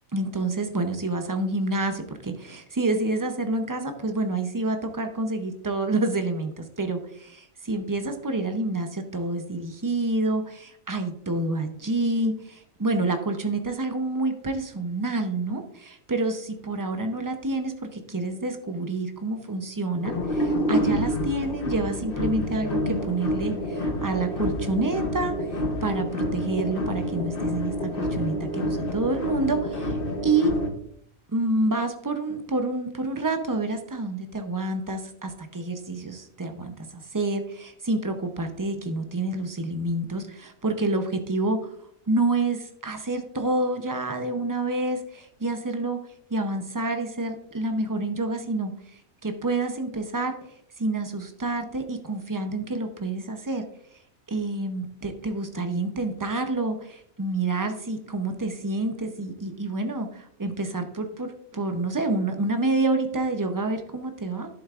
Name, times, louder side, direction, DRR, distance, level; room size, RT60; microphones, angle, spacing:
voice 1, 0.1-25.3 25.8-30.0 30.2-30.5 31.3-41.6 42.1-46.0 46.3-50.4 50.8-53.6 54.3-64.5, right 2 dB, 35° right, 6 dB, 0.3 m, -28 dB
sound 1, 19.9-30.7, equal, 45° left, 1.2 m, -28 dB
11.0 x 7.1 x 2.4 m, 0.68 s
omnidirectional pair, 1.5 m